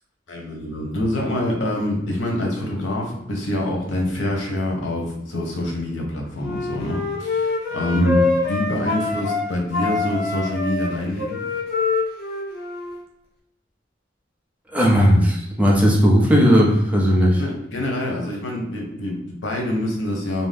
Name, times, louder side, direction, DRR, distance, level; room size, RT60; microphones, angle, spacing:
voice 1, 0.3-8.1 8.5-11.4 17.3-20.5, left 1 dB, 90° left, 0 dB, 0.8 m, -26 dB
Wind instrument woodwind instrument, 6.4-9.4 9.7-13.0, left 4 dB, 60° left, 0.6 m, -25 dB
voice 2, 14.7-17.4, equal, 10° right, -3 dB, 0.6 m, -16 dB
2.6 x 2.1 x 3.4 m, 0.88 s
head